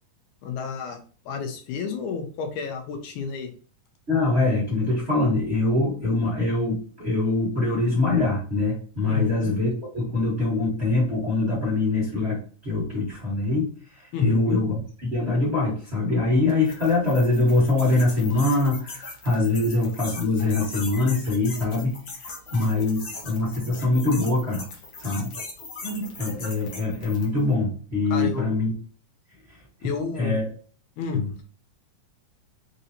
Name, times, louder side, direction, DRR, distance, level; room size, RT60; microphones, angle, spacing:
voice 1, 0.4-1.0 1.3-3.5 9.1-9.5 14.1-14.6 28.1-28.5 29.8-30.4 31.0-31.2, left 6 dB, 80° left, 4 dB, 2.2 m, -30 dB
voice 2, 4.1-21.9 22.5-24.6 25.0-25.3 25.8-28.7 30.1-30.4 31.1-31.3, left 2 dB, 65° right, -6 dB, 0.6 m, -23 dB
sound 1, 16.5-27.4, left 3 dB, 65° left, 1.2 m, -40 dB
5.3 x 2.7 x 2.7 m, 0.43 s
omnidirectional pair, 3.5 m